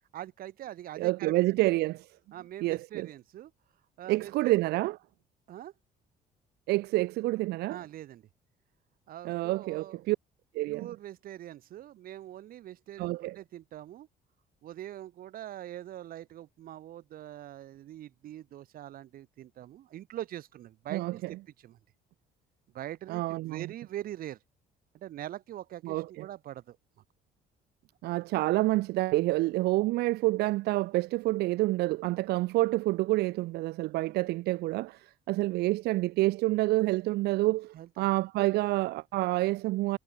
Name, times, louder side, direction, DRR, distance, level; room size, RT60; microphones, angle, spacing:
voice 1, 0.1-1.6 2.3-3.5 4.0-4.5 5.5-5.7 7.7-8.3 9.1-10.0 10.7-14.1 14.6-21.2 21.6-21.8 22.7-24.4 24.9-26.8 37.7-38.1, right 12 dB, 60° right, 1.0 m, -43 dB
voice 2, 1.0-2.1 2.6-3.1 4.1-5.0 6.7-7.8 9.2-10.2 10.5-10.9 13.0-13.4 20.9-21.1 23.1-23.7 25.8-26.3 28.0-40.0, right 19 dB, 75° right, 0.4 m, -28 dB
cardioid pair, 110°, 17 cm